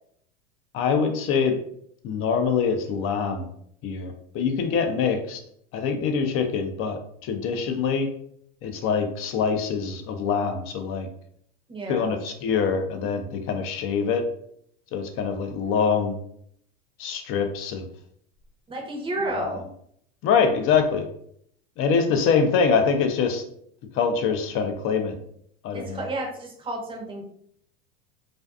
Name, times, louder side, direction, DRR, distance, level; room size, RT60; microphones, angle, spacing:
voice 1, 0.7-1.6 2.0-3.5 3.8-5.4 5.7-8.1 8.6-11.1 11.9-14.2 14.9-16.2 17.0-17.9 19.4-19.6 20.2-21.1 21.8-23.4 23.9-25.2 25.6-26.0, left 6 dB, 45° left, 6 dB, 0.5 m, -24 dB
voice 2, 11.7-12.1 18.7-19.6 25.7-27.2, right 2 dB, 15° right, 1 dB, 0.7 m, -31 dB
2.5 x 2.3 x 2.3 m, 0.67 s
hypercardioid pair, 105°, 32 cm